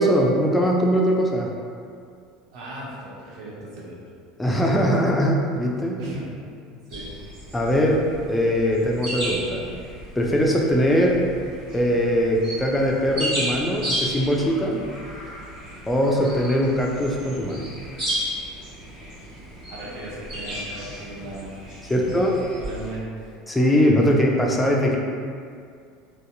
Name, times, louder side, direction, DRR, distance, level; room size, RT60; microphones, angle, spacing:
voice 1, 0.0-1.5 4.4-6.0 7.5-9.7 10.2-11.2 11.7-14.8 15.9-17.7 21.9-22.3 23.5-25.0, equal, 10° left, -1 dB, 0.3 m, -21 dB
voice 2, 2.5-4.0 4.5-4.9 6.0-6.4 6.9-7.1 19.7-21.6 21.9-22.1 22.6-23.3, right 1 dB, 60° right, -5 dB, 0.7 m, -36 dB
sound 1, 6.9-22.9, right 1 dB, 45° right, 1.4 m, -34 dB
2.6 x 2.2 x 2.5 m, 2.2 s
hypercardioid pair, 75°, 0 cm